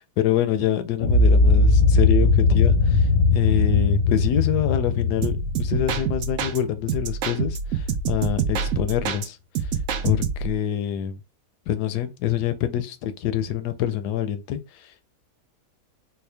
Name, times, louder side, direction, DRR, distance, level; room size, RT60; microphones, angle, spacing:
voice 1, 0.0-9.4 10.0-11.2 11.7-14.6, left 10 dB, 75° left, 1.1 m, -26 dB
sound 1, 1.0-7.1, left 3 dB, 50° left, 0.7 m, -19 dB
sound 2, 5.2-6.6 6.9-9.3 9.5-10.6, right 6 dB, 70° right, 0.7 m, -27 dB
4.4 x 2.1 x 3.2 m
omnidirectional pair, 1.8 m